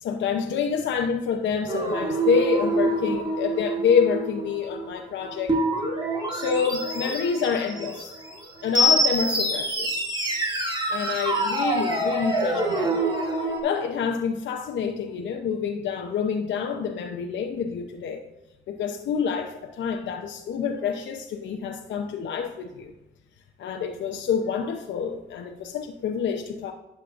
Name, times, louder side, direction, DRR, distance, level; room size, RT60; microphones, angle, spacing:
voice 1, 0.0-5.6 6.3-8.1 8.6-10.0 10.9-13.0 13.6-18.2 18.7-22.9 23.6-26.7, left 6 dB, 65° left, 3 dB, 0.8 m, -27 dB
sound 1, 1.7-13.6, right 1 dB, 25° right, 2.3 m, -26 dB
11.5 x 7.4 x 2.5 m, 1.0 s
cardioid pair, 90°, 20 cm